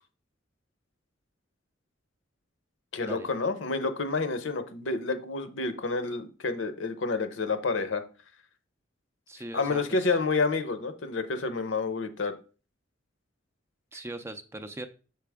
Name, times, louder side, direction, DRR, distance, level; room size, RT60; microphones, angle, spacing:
voice 1, 2.9-8.0 9.5-12.3, left 3 dB, 75° left, 10 dB, 0.7 m, -29 dB
voice 2, 9.3-10.1 13.9-14.9, right 1 dB, 15° right, 9 dB, 0.4 m, -40 dB
6.8 x 4.7 x 3.5 m, 0.36 s
head